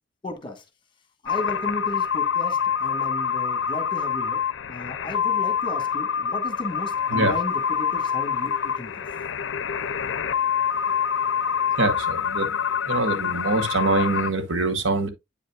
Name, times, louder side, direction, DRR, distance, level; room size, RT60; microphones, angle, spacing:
voice 1, 0.2-0.6 1.2-4.4 4.7-9.0, left 1 dB, 25° left, 1.3 m, -35 dB
sound 1, 1.3-14.3, left 7 dB, 80° left, 0.5 m, -26 dB
voice 2, 11.8-12.6 12.9-15.1, right 2 dB, 85° right, 1.1 m, -24 dB
8.5 x 5.2 x 2.3 m
head